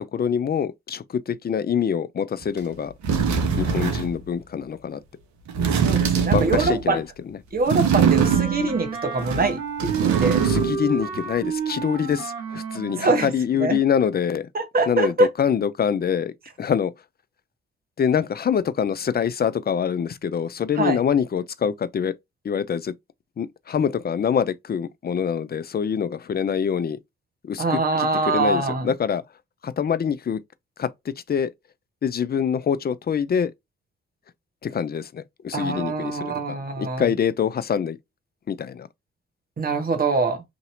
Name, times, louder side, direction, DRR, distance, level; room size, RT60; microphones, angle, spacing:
voice 1, 0.0-2.9 3.6-5.0 6.3-7.1 10.4-14.5 14.9-16.9 18.0-22.1 22.4-22.9 23.4-27.0 27.4-29.2 29.6-30.4 30.8-30.9 31.3-31.5 32.0-33.5 34.6-36.3 36.8-38.0 38.5-38.9, left 7 dB, 30° left, 0.5 m, -25 dB
sound 1, 2.6-2.7 3.0-4.2 5.5-6.9 7.7-8.8 9.2-10.9 11.1-11.2, right 7 dB, 65° right, 0.9 m, -22 dB
voice 2, 5.7-7.0 7.5-10.4 12.9-13.3 13.6-13.8 14.5-15.3 20.7-21.0 27.6-28.9 35.5-37.0 39.6-40.4, right 3 dB, 30° right, 1.1 m, -24 dB
Wind instrument woodwind instrument, 8.1-13.4, right 5 dB, 85° right, 1.1 m, -31 dB
2.9 x 2.7 x 2.7 m
hypercardioid pair, 40°, 31 cm